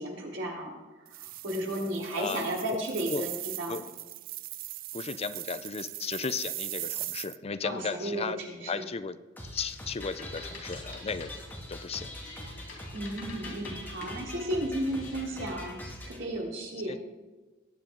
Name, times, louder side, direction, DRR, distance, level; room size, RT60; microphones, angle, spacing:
voice 1, 0.0-3.3 3.6-3.8 7.6-8.8 12.9-16.9, right 1 dB, 75° right, -2 dB, 3.6 m, -34 dB
sound 1, 1.1-7.4, right 16 dB, 50° right, 0.3 m, -39 dB
voice 2, 4.9-9.2 9.5-11.3 11.7-12.1 12.6-12.7 16.9-17.0, left 5 dB, 30° left, 13 dB, 0.5 m, -35 dB
sound 2, 9.4-16.2, left 1 dB, 10° left, 2.2 m, -43 dB
sound 3, 9.7-15.4, left 3 dB, 90° left, 3.8 m, -49 dB
19.5 x 8.8 x 3.8 m, 1.2 s
head